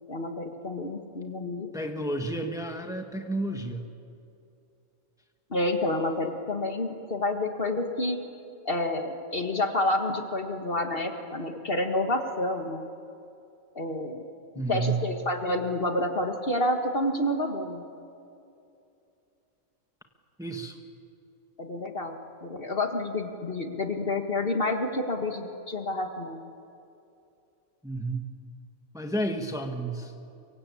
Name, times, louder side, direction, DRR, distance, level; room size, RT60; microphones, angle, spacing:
voice 1, 0.1-1.7 5.5-8.2 8.7-12.9 13.8-14.2 14.7-17.8 21.6-22.1 22.4-26.4, left 1 dB, 45° left, 4 dB, 1.9 m, -29 dB
voice 2, 1.7-3.8 14.5-14.9 20.4-20.8 27.8-28.2 28.9-30.1, right 2 dB, 5° right, 4 dB, 1.6 m, -31 dB
24.0 x 24.0 x 8.5 m, 2.7 s
omnidirectional pair, 1.4 m